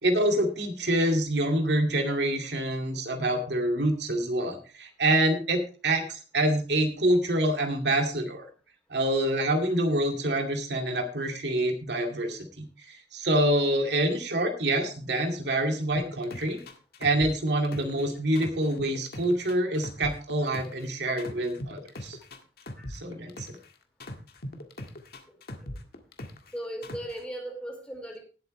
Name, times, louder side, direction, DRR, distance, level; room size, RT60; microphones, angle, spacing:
voice 1, 0.0-8.5 8.9-16.6 17.0-22.2 22.9-23.6, right 1 dB, 70° right, 3 dB, 2.3 m, -26 dB
sound 1, 16.0-18.1 18.4-20.9 21.2-23.7 24.0-26.5 26.8-27.2, left 1 dB, 60° left, 1.8 m, -39 dB
voice 2, 26.5-28.2, right 1 dB, 5° left, 0 dB, 4.7 m, -37 dB
18.5 x 8.4 x 3.2 m, 0.35 s
head